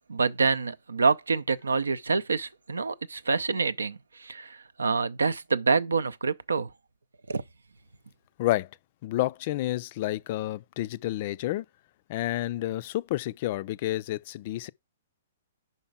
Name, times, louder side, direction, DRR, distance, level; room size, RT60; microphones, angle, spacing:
voice 1, 0.1-4.0 4.3-4.5 4.8-6.7 7.3-7.4, right 4 dB, 80° right, 0.5 m, -26 dB
voice 2, 9.0-11.6 12.1-14.7, left 15 dB, 45° left, 0.3 m, -30 dB
5.4 x 4.5 x 5.8 m
figure-of-eight pair, 115°, 0 cm